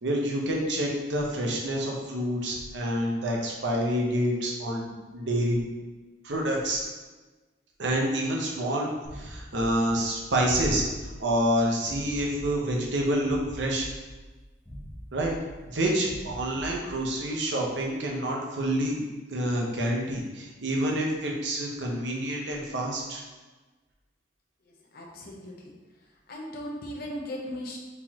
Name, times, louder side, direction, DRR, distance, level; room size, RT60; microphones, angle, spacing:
voice 1, 0.0-5.7 6.2-6.8 7.8-10.8 11.2-13.9 15.1-15.4 15.6-19.0 19.3-23.2, right 1 dB, 70° right, -1 dB, 0.8 m, -28 dB
sound 1, 9.0-17.3, equal, 15° left, 1.2 m, -44 dB
voice 2, 24.6-25.7 26.3-27.8, left 1 dB, 55° left, -1 dB, 0.8 m, -38 dB
4.5 x 4.0 x 2.9 m, 1.3 s
head